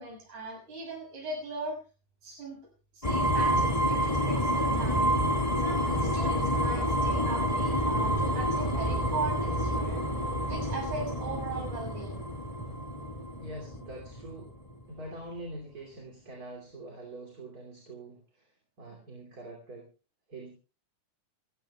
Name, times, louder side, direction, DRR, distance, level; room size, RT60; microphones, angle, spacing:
voice 1, 0.0-1.8 2.2-2.6 2.9-5.2 5.6-10.1 10.4-12.2, right 3 dB, 65° right, -1 dB, 8.1 m, -39 dB
sound 1, 3.0-14.8, equal, 80° left, 0.3 m, -28 dB
voice 2, 13.4-14.6 14.9-18.5 18.8-19.9 20.3-20.5, right 1 dB, 30° right, 0 dB, 2.9 m, -44 dB
27.5 x 13.5 x 2.3 m, 0.33 s
omnidirectional pair, 3.7 m